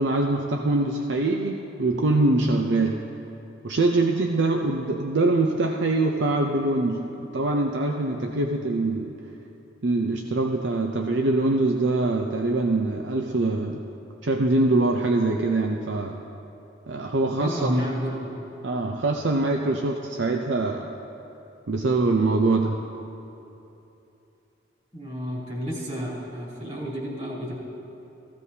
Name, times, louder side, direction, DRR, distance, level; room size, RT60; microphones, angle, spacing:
voice 1, 0.0-3.1 3.6-9.2 9.8-13.8 14.2-16.2 16.9-17.9 18.6-20.9 21.7-22.8, right 2 dB, 75° right, 2 dB, 0.6 m, -23 dB
voice 2, 17.3-18.3 24.9-27.5, equal, 35° right, -7 dB, 3.4 m, -31 dB
16.0 x 14.5 x 2.8 m, 2.9 s
head